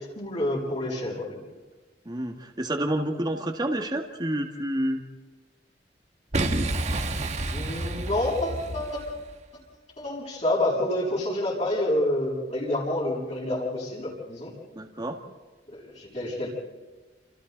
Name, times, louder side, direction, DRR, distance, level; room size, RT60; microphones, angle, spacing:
voice 1, 0.2-1.4 7.5-9.0 10.0-14.5 15.7-16.5, left 1 dB, 40° left, -5 dB, 7.8 m, -28 dB
voice 2, 2.1-5.0 14.7-15.2, right 1 dB, 25° right, 2 dB, 2.0 m, -29 dB
Boom, 6.3-9.3, right 2 dB, 40° right, 1.4 m, -29 dB
29.0 x 29.0 x 4.1 m, 1.3 s
head